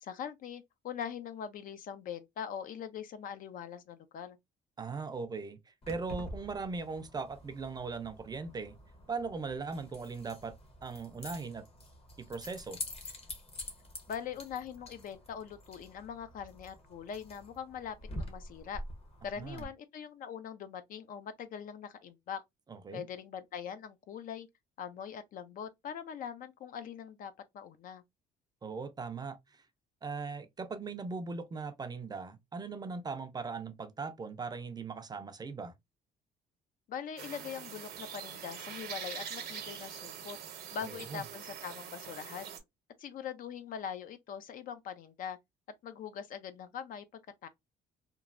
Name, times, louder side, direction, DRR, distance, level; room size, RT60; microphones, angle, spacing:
voice 1, 0.0-4.4 14.1-18.8 19.2-22.4 22.9-24.5 24.8-28.0 36.9-42.5 43.0-45.4 45.8-47.0 47.4-47.5, left 8 dB, 55° left, 0.5 m, -42 dB
voice 2, 4.8-8.8 9.1-10.5 10.8-11.7 12.2-12.8 19.4-19.7 22.7-23.0 28.6-29.6 30.0-35.7 40.8-41.2, right 4 dB, 25° right, 0.4 m, -39 dB
Keys jangling, 5.8-19.6, left 1 dB, 35° left, 0.9 m, -47 dB
sound 1, 37.2-42.6, right 8 dB, 70° right, 0.7 m, -44 dB
3.0 x 2.2 x 2.4 m
cardioid pair, 110°, 17 cm